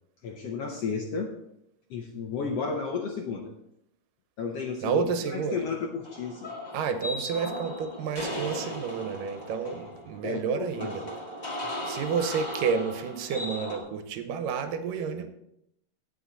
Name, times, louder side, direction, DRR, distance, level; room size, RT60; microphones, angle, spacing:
voice 1, 0.2-1.3 1.9-3.5 4.4-6.6 10.2-10.9 11.6-11.7, left 5 dB, 70° left, 2 dB, 1.5 m, -33 dB
voice 2, 4.8-5.6 6.7-11.0 11.9-15.3, right 6 dB, 85° right, 8 dB, 2.5 m, -30 dB
sound 1, 6.0-13.8, equal, 30° left, 0.7 m, -37 dB
16.5 x 5.8 x 4.0 m, 0.78 s
omnidirectional pair, 3.8 m